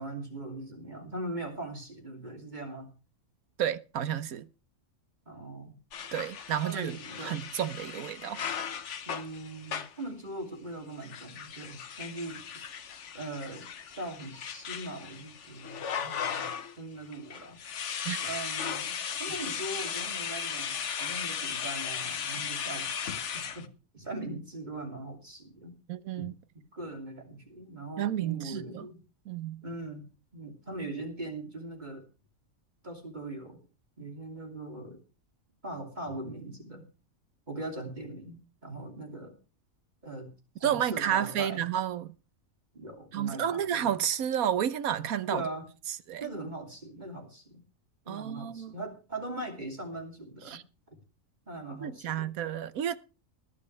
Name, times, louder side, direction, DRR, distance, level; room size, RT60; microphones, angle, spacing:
voice 1, 0.0-2.9 5.3-5.8 6.6-7.4 9.1-12.8 13.1-13.7 14.0-17.6 18.2-23.7 23.9-25.8 26.2-29.0 29.6-32.1 32.8-33.6 34.0-35.0 35.6-36.8 37.5-39.3 40.0-41.6 42.7-44.0 45.3-45.6 46.2-47.6 48.0-50.6 50.9-51.0 51.5-52.3, right 2 dB, 30° right, 3.0 m, -40 dB
voice 2, 3.6-4.5 6.1-8.4 18.0-18.2 25.9-26.3 28.0-28.8 29.3-29.6 40.6-42.1 43.1-45.5 46.1-46.3 48.1-48.7 50.5-50.6 51.7-53.0, right 10 dB, 85° right, 1.3 m, -31 dB
sound 1, 5.9-10.1 10.9-16.8 17.1-23.7, left 7 dB, 60° left, 1.3 m, -37 dB
21.0 x 9.8 x 3.3 m
omnidirectional pair, 1.4 m